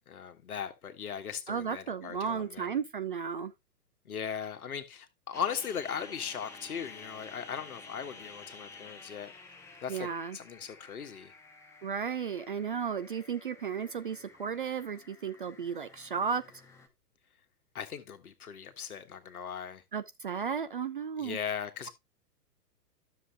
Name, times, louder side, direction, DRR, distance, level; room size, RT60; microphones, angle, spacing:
voice 1, 0.1-2.8 4.0-9.3 9.8-11.3 17.7-19.8 21.2-21.9, left 7 dB, 60° left, 1.5 m, -38 dB
voice 2, 1.5-3.5 9.9-10.4 11.8-16.4 19.9-21.4, right 6 dB, 35° right, 0.4 m, -34 dB
sound 1, 5.3-16.9, left 4 dB, 5° left, 0.8 m, -52 dB
13.0 x 7.0 x 2.3 m
figure-of-eight pair, 110°, 49 cm